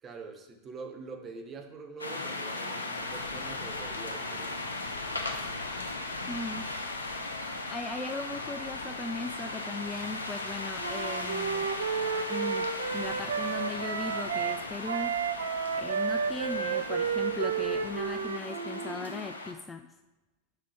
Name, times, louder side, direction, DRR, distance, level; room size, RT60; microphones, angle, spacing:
voice 1, 0.0-4.7, right 4 dB, 25° right, 4 dB, 0.9 m, -44 dB
sound 1, 2.0-19.5, left 2 dB, 80° left, 0.7 m, -37 dB
voice 2, 6.3-6.7 7.7-11.7 12.3-15.4 15.8-19.9, left 3 dB, 15° left, 7 dB, 0.3 m, -38 dB
Wind instrument woodwind instrument, 10.8-14.6 14.9-19.0, right 6 dB, 70° right, 0.5 m, -31 dB
5.6 x 5.1 x 4.9 m, 1.0 s
figure-of-eight pair, 90°, 0 cm